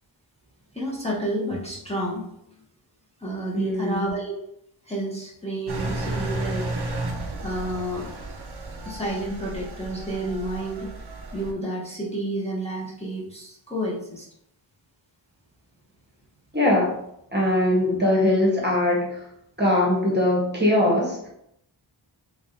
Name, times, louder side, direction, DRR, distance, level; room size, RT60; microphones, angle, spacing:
voice 1, 0.7-2.3 3.2-4.4 4.8-6.7 7.4-8.1 8.8-10.9 11.3-14.3, right 1 dB, 15° left, -6 dB, 1.1 m, -30 dB
voice 2, 3.5-4.1 16.5-16.9 17.3-19.2 19.6-21.3, left 1 dB, 20° right, -4 dB, 1.2 m, -21 dB
Engine, 5.7-11.5, right 2 dB, 55° right, 0.7 m, -33 dB
3.5 x 3.3 x 2.7 m, 0.75 s
wide cardioid pair, 50°, 48 cm